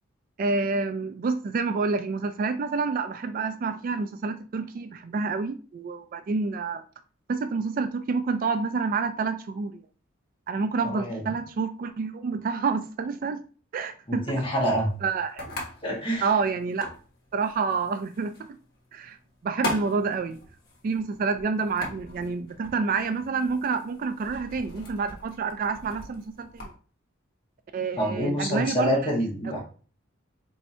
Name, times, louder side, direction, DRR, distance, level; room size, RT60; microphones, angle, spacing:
voice 1, 0.4-6.8 7.3-9.8 10.5-13.4 13.7-14.3 15.0-15.5 16.2-16.9 17.3-18.5 18.9-19.2 19.4-20.4 20.8-26.7 27.7-29.0, right 4 dB, 45° right, 10 dB, 0.3 m, -28 dB
voice 2, 10.8-11.3 14.1-14.9 15.8-16.3 28.0-29.6, equal, 25° left, -2 dB, 1.5 m, -26 dB
sound 1, 14.2-26.7, left 1 dB, 50° left, 1.4 m, -41 dB
3.3 x 2.7 x 4.2 m, 0.38 s
head